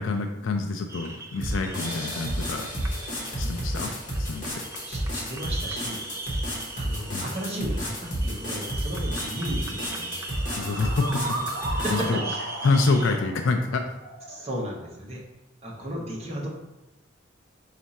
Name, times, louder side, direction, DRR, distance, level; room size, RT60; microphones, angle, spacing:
voice 1, 0.0-2.7 3.4-3.9 4.2-4.6 7.1-7.3 10.6-11.5 11.9-12.2 12.6-13.8, left 3 dB, 75° left, 3 dB, 0.4 m, -26 dB
sound 1, 0.9-13.2, right 3 dB, 15° right, 0.3 m, -40 dB
sound 2, 1.4-12.1, equal, 40° left, 1.1 m, -31 dB
voice 2, 4.9-6.1 6.8-10.1 11.7-12.4 14.3-15.2 15.6-16.5, equal, 30° right, -2 dB, 0.8 m, -34 dB
sound 3, 8.9-9.1 10.3-14.9, right 2 dB, 80° right, 0.9 m, -35 dB
4.3 x 2.5 x 4.1 m, 0.93 s
head